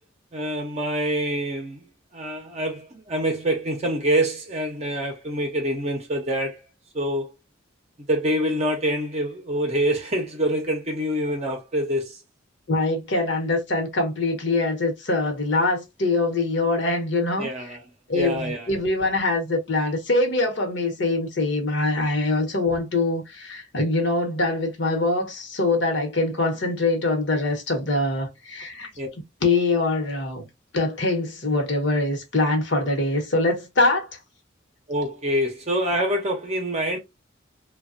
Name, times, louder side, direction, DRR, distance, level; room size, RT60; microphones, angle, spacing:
voice 1, 0.3-1.9 2.1-6.6 6.9-7.3 8.1-12.2 17.4-17.8 18.1-18.7 29.0-29.1 34.9-37.0, right 1 dB, 35° right, 0.6 m, -26 dB
voice 2, 12.7-17.8 18.1-28.9 29.4-30.5 30.7-34.1, left 2 dB, 65° left, 1.0 m, -23 dB
3.2 x 2.2 x 2.5 m
head